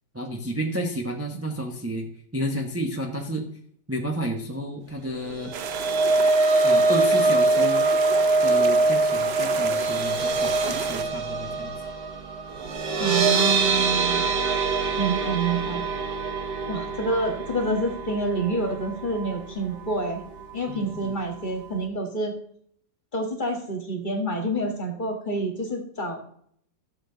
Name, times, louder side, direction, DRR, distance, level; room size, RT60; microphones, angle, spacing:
voice 1, 0.1-3.5 3.9-5.6 6.6-7.9 8.4-11.7 20.7-21.1, right 1 dB, 10° right, 1 dB, 0.8 m, -31 dB
sound 1, 5.3-19.5 19.9-20.1 20.4-20.5, right 3 dB, 70° right, 1.9 m, -24 dB
sound 2, 5.5-11.0, right 8 dB, 90° right, 0.5 m, -33 dB
voice 2, 13.0-14.2 15.0-15.8 16.7-20.2 20.5-22.3 23.1-26.3, right 2 dB, 30° left, 3 dB, 1.8 m, -28 dB
13.5 x 7.1 x 3.9 m, 0.65 s
omnidirectional pair, 1.9 m